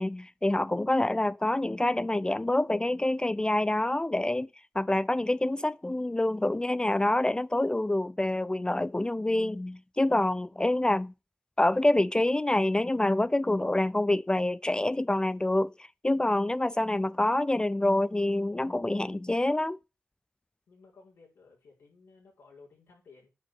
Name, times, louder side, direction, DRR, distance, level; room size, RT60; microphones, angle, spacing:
voice 1, 0.0-4.5 4.8-11.1 11.6-15.7 16.0-19.8, left 1 dB, 20° left, 0.4 m, -26 dB
voice 2, 20.7-23.3, left 4 dB, 90° left, 5.5 m, -56 dB
9.1 x 5.4 x 8.0 m
cardioid pair, 45°, 4 cm